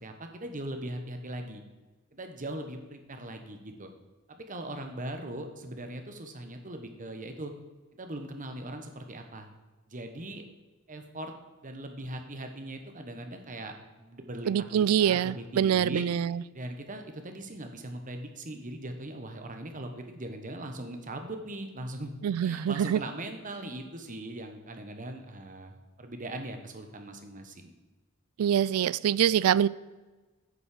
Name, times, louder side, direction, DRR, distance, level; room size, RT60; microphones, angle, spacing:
voice 1, 0.0-1.6 2.1-3.9 4.3-7.5 8.0-9.5 9.9-10.4 10.9-11.3 11.6-16.0 16.5-22.1 22.4-27.7, right 1 dB, 40° right, 1.2 m, -40 dB
voice 2, 14.5-16.4 22.2-23.0 28.4-29.7, right 9 dB, 85° right, 0.3 m, -25 dB
9.4 x 6.4 x 6.6 m
head